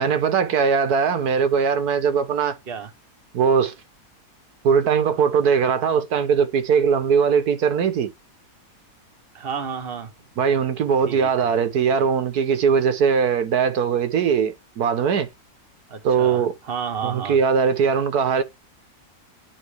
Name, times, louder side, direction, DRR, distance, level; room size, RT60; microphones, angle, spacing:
voice 1, 0.0-2.6 3.3-3.7 4.6-8.1 10.4-15.3 16.0-16.5 17.0-18.4, right 6 dB, 85° right, 1.5 m, -20 dB
voice 2, 9.3-10.1 11.0-11.5 15.9-17.4, right 6 dB, 40° right, 1.4 m, -31 dB
11.0 x 3.9 x 3.4 m
omnidirectional pair, 1.6 m